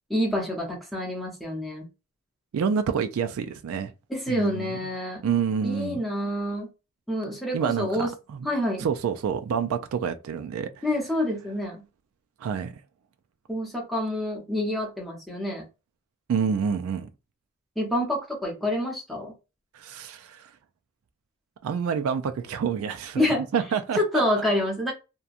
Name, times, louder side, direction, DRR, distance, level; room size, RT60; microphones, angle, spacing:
voice 1, 0.1-1.9 4.1-5.2 5.6-6.7 7.1-8.1 8.4-8.9 10.8-11.8 13.5-15.6 17.8-19.3 23.2-23.4 23.9-24.9, left 1 dB, ahead, 0.7 m, -27 dB
voice 2, 2.5-3.9 4.3-4.8 5.2-6.0 7.5-8.1 8.3-8.5 8.8-10.9 12.4-12.7 16.3-17.1 19.7-20.5 21.6-24.2, right 6 dB, 70° right, 0.3 m, -28 dB
2.8 x 2.2 x 2.4 m
head